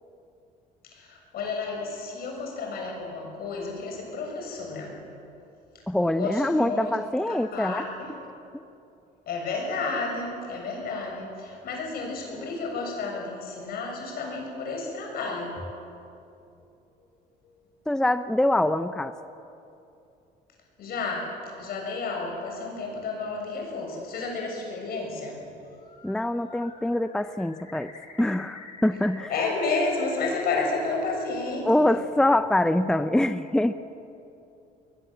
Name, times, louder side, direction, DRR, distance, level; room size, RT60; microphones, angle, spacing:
voice 1, 0.9-5.0 6.0-6.9 7.3-8.1 9.3-15.5 20.8-21.3 21.6-25.4 29.3-31.9, left 3 dB, 65° left, 1 dB, 7.0 m, -31 dB
voice 2, 5.9-7.9 17.9-19.1 26.0-27.9 28.2-29.3 31.6-33.7, left 1 dB, 5° left, 11 dB, 0.6 m, -24 dB
Bird, 25.7-26.2 26.5-30.2 30.5-31.3, left 4 dB, 45° left, 6.0 m, -48 dB
21.5 x 21.5 x 7.9 m, 2.8 s
cardioid pair, 110°, 17 cm